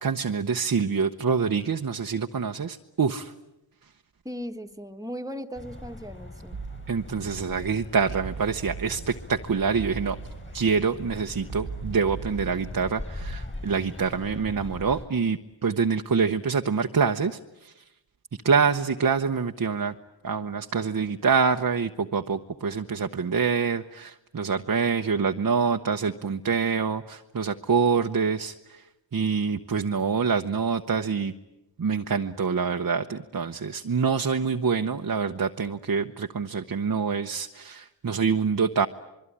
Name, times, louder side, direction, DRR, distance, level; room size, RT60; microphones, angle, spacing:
voice 1, 0.0-3.3 6.9-10.2 10.5-17.4 17.6-17.7 18.4-19.9 20.2-28.5 29.1-31.3 31.8-38.9, right 5 dB, 50° right, 6 dB, 0.9 m, -26 dB
voice 2, 4.2-6.6, equal, 10° right, 6 dB, 1.7 m, -37 dB
sound 1, 5.5-15.1, left 1 dB, 25° left, 6.9 m, -41 dB
sound 2, 6.5-7.4 8.1-9.4 9.8-10.9 11.5-13.4, right 6 dB, 85° right, 1.5 m, -39 dB
25.5 x 23.0 x 10.0 m, 0.94 s
wide cardioid pair, 70°, 44 cm